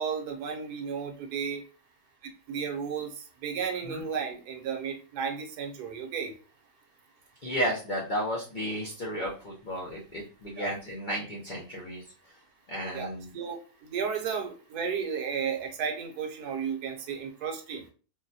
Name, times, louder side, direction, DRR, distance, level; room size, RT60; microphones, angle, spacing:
voice 1, 0.0-1.6 2.5-6.3 10.6-10.7 12.9-13.1 13.3-17.8, right 6 dB, 70° right, 3 dB, 1.1 m, -33 dB
voice 2, 7.4-12.0 12.7-13.3, equal, 60° left, -4 dB, 0.5 m, -33 dB
3.8 x 2.1 x 2.6 m, 0.37 s
omnidirectional pair, 1.8 m